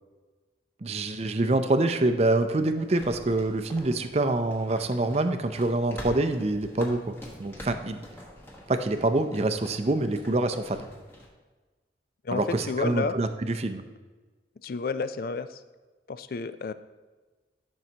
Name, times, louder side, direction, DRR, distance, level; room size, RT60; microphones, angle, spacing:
voice 1, 0.8-8.0 8.7-10.9 12.3-13.8, right 2 dB, 35° right, 8 dB, 0.5 m, -26 dB
sound 1, 2.5-11.3, left 1 dB, 15° left, 1.3 m, -46 dB
voice 2, 12.2-13.2 14.6-15.6 16.1-16.7, left 4 dB, 55° left, 13 dB, 0.4 m, -31 dB
13.5 x 6.3 x 2.9 m, 1.3 s
head